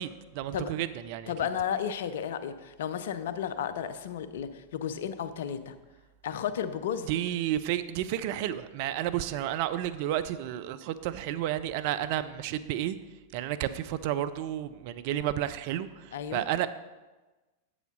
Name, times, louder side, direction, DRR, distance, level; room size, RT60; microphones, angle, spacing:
voice 1, 0.0-1.3 7.1-13.0 13.3-16.7, right 12 dB, 50° right, 13 dB, 0.4 m, -31 dB
voice 2, 1.3-5.7 6.2-7.1 16.1-16.5, left 8 dB, 65° left, 11 dB, 0.5 m, -33 dB
7.8 x 4.9 x 5.3 m, 1.2 s
figure-of-eight pair, 90°, 0 cm